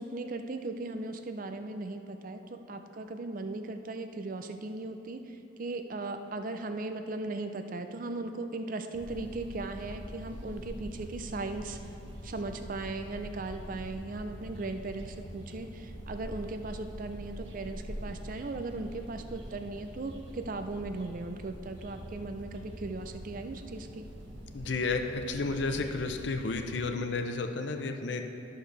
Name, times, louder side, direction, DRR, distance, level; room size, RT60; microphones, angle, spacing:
voice 1, 0.0-11.8 12.2-24.1, right 2 dB, 45° right, 7 dB, 0.5 m, -38 dB
sound 1, 8.9-26.8, equal, 70° right, 1.2 m, -44 dB
voice 2, 24.5-28.2, left 3 dB, 65° left, 6 dB, 0.6 m, -32 dB
12.5 x 6.5 x 3.3 m, 2.7 s
head